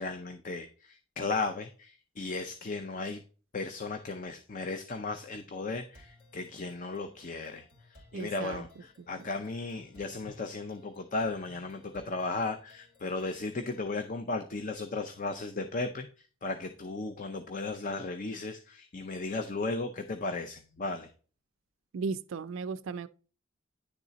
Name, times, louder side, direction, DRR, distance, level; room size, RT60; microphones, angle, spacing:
voice 1, 0.0-3.2 3.5-16.1 16.4-21.1, left 3 dB, 40° left, 0.6 m, -35 dB
sound 1, 5.9-13.9, left 1 dB, 75° left, 2.9 m, -60 dB
voice 2, 8.1-8.6 21.9-23.1, right 4 dB, 75° right, 0.4 m, -35 dB
9.9 x 3.7 x 4.0 m
head